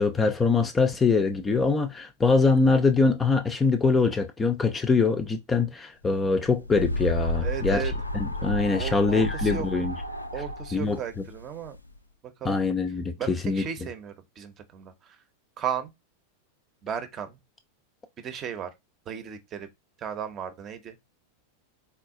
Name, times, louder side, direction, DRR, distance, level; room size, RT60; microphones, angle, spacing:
voice 1, 0.0-7.8 8.1-9.9 10.7-11.0 12.4-13.6, left 4 dB, 15° left, 0.5 m, -23 dB
sound 1, 6.2-11.9, left 1 dB, 85° left, 0.4 m, -31 dB
voice 2, 7.4-7.9 8.7-9.7 10.3-11.8 12.2-12.6 13.2-15.2 15.6-15.9 16.8-17.4 18.2-18.7 19.1-19.7 20.0-21.0, right 9 dB, 30° right, 0.8 m, -35 dB
4.2 x 2.3 x 3.7 m
figure-of-eight pair, 90°, 0 cm